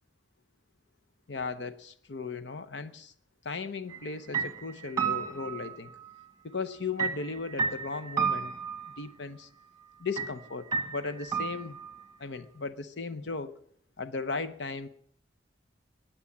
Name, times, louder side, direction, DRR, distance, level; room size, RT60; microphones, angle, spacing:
voice 1, 1.3-3.1 3.4-5.9 6.4-8.5 9.0-9.5 10.0-11.8 12.2-13.5 14.0-14.9, left 4 dB, 65° left, 10 dB, 0.8 m, -36 dB
sound 1, 3.9-4.1 4.3-6.2 7.0-9.0 10.2-10.3 10.7-12.0, right 6 dB, 20° right, 1.4 m, -32 dB
21.5 x 8.9 x 7.2 m, 0.64 s
head